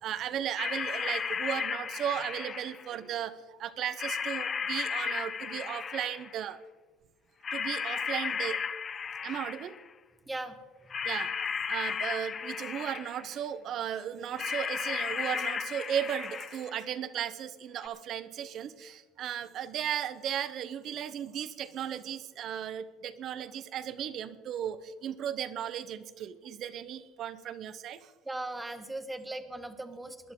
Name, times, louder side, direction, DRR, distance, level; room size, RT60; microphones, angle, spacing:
voice 1, 0.0-6.6 7.5-8.6 9.2-9.7 11.0-11.3 11.7-28.0, right 9 dB, 55° right, 14 dB, 0.9 m, -35 dB
sound 1, 0.6-2.9 4.0-6.4 7.4-9.9 10.9-13.3 14.4-16.8 17.8-17.9, left 6 dB, 35° left, 0.7 m, -34 dB
voice 2, 10.3-10.6 10.8-11.0 28.2-30.3, right 2 dB, 10° right, 9 dB, 1.4 m, -38 dB
20.5 x 11.0 x 3.8 m, 1.2 s
hypercardioid pair, 80°, 0 cm